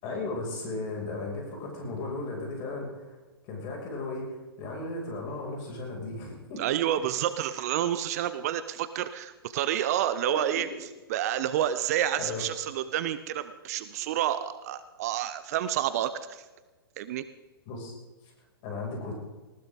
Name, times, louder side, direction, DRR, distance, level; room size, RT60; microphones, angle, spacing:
voice 1, 0.0-3.2 3.4-6.6 10.3-10.5 12.2-12.4 17.7-17.9 18.6-19.1, left 2 dB, 35° left, 0 dB, 6.4 m, -35 dB
voice 2, 6.6-16.4 17.0-17.2, right 11 dB, 40° right, 13 dB, 0.8 m, -29 dB
19.5 x 18.5 x 3.9 m, 1.2 s
figure-of-eight pair, 115°, 13 cm